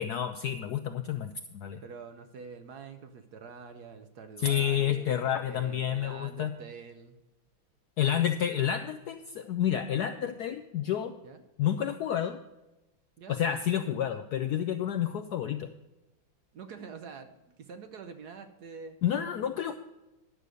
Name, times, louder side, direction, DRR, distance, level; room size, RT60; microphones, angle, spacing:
voice 1, 0.0-1.8 4.4-6.5 8.0-11.2 11.6-12.4 13.3-15.7 19.0-19.8, left 10 dB, 75° left, 8 dB, 0.9 m, -29 dB
voice 2, 1.8-7.2 11.2-11.4 13.2-13.4 16.5-17.3 17.6-19.0, right 5 dB, 60° right, 7 dB, 1.1 m, -46 dB
11.0 x 6.7 x 6.3 m, 1.0 s
omnidirectional pair, 2.2 m